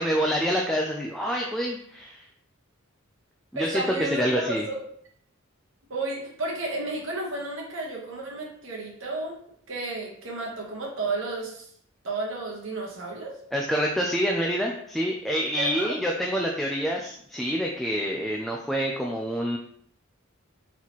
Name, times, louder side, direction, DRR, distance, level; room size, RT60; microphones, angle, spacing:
voice 1, 0.0-2.2 3.5-4.6 13.5-19.6, equal, ahead, -1 dB, 0.4 m, -27 dB
voice 2, 3.5-4.8 5.9-9.4 9.7-11.7 12.0-13.4 15.6-15.9, right 2 dB, 65° right, -2 dB, 1.3 m, -32 dB
4.2 x 4.0 x 3.0 m, 0.64 s
head